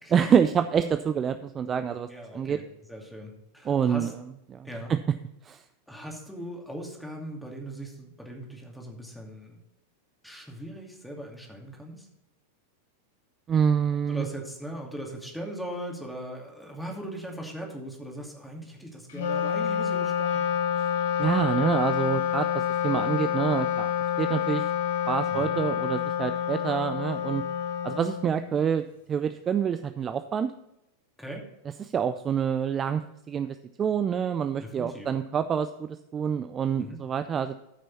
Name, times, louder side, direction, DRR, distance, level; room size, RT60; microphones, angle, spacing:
voice 1, 0.1-2.1 2.3-2.6 3.7-4.1 4.5-5.0 5.4-5.6 13.5-14.3 21.2-23.9 24.2-24.7 25.1-27.4 27.8-30.5 31.8-33.0 33.3-37.6, right 7 dB, 25° right, 10 dB, 0.5 m, -27 dB
voice 2, 2.1-2.6 2.9-4.1 4.6-4.9 5.9-9.6 10.2-12.1 14.1-20.5 25.3-25.5 31.2-31.4 34.6-35.1 36.8-37.0, right 1 dB, ahead, 0 dB, 2.5 m, -39 dB
Wind instrument woodwind instrument, 19.1-28.7, left 9 dB, 55° left, 1.1 m, -28 dB
13.5 x 6.2 x 4.1 m, 0.88 s
figure-of-eight pair, 90°, 0 cm